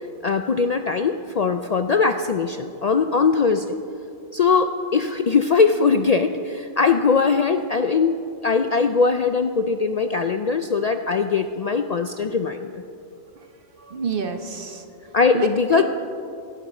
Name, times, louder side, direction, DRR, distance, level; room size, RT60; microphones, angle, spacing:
voice 1, 0.2-3.8 4.3-12.8 15.1-15.8, left 5 dB, 75° left, 7 dB, 0.3 m, -21 dB
voice 2, 13.2-15.8, right 5 dB, 50° right, 6 dB, 1.1 m, -31 dB
17.5 x 11.5 x 4.3 m, 2.6 s
omnidirectional pair, 1.2 m